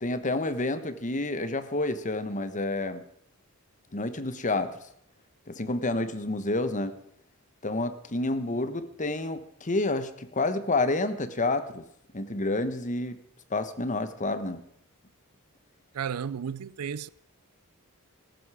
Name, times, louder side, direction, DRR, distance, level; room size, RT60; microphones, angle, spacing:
voice 1, 0.0-3.0 3.9-4.8 5.5-6.9 7.6-11.8 12.1-13.2 13.5-14.6, left 2 dB, 35° left, 1.2 m, -29 dB
voice 2, 15.9-17.1, right 7 dB, 85° right, 0.5 m, -33 dB
16.5 x 14.5 x 4.9 m
head